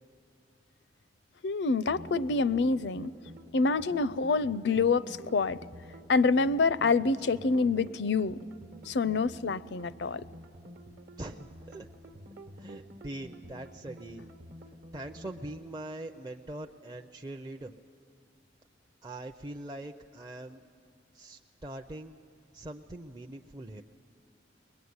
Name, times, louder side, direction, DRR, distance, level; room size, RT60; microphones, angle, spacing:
voice 1, 1.4-3.1 3.5-5.6 6.1-8.4 8.9-10.2, left 4 dB, 65° left, 18 dB, 0.5 m, -26 dB
sound 1, 1.9-15.6, equal, 60° right, 1.1 m, -50 dB
voice 2, 11.2-11.9 12.6-14.3 14.9-17.7 19.0-20.6 21.1-22.2 22.5-23.8, right 1 dB, 25° right, 3 dB, 0.6 m, -42 dB
22.0 x 21.0 x 9.6 m, 2.3 s
head